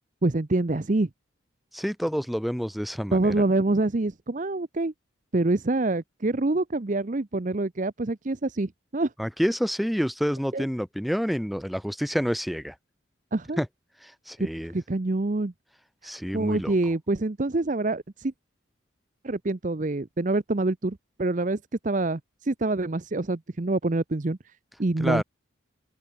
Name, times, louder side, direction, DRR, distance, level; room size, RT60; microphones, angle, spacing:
voice 1, 0.2-1.1 3.1-4.9 5.3-9.1 10.5-10.6 13.3-13.6 14.4-14.5 14.7-15.5 16.0-18.3 19.2-24.4 24.8-25.2, right 2 dB, 40° right, 0.7 m, -26 dB
voice 2, 1.7-3.3 9.2-12.7 13.6-13.7 14.0-14.7 16.0-16.7 25.0-25.2, equal, ahead, 2.3 m, -28 dB
open air
head